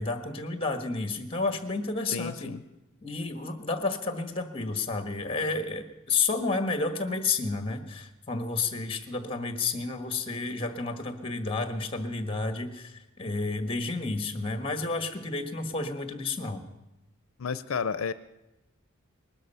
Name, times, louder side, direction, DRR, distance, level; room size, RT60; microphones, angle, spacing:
voice 1, 0.0-2.5 3.0-16.6, left 3 dB, 25° left, 8 dB, 1.4 m, -31 dB
voice 2, 2.1-2.6 17.4-18.1, left 6 dB, 80° left, 13 dB, 0.5 m, -31 dB
20.0 x 12.5 x 5.6 m, 0.99 s
head